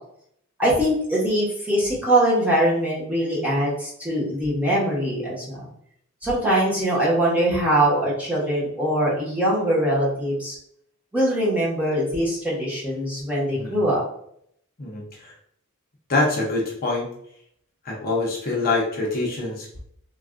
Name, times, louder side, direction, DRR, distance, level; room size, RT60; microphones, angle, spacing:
voice 1, 0.6-5.7 6.2-10.5 11.1-14.0, right 1 dB, 5° right, -6 dB, 0.9 m, -22 dB
voice 2, 13.5-13.8 14.8-15.4 16.1-17.1 17.8-19.8, left 2 dB, 40° left, -3 dB, 0.6 m, -25 dB
3.2 x 2.3 x 2.4 m, 0.69 s
head